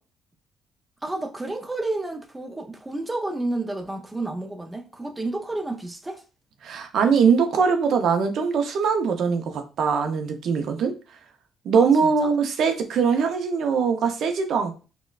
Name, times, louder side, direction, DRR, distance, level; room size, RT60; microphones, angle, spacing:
voice 1, 1.0-6.2 11.7-12.3, right 2 dB, 15° right, 0.5 m, -31 dB
voice 2, 6.6-10.9 11.6-14.8, right 6 dB, 70° right, 0.5 m, -22 dB
4.1 x 2.2 x 2.3 m
cardioid pair, 90°, 0 cm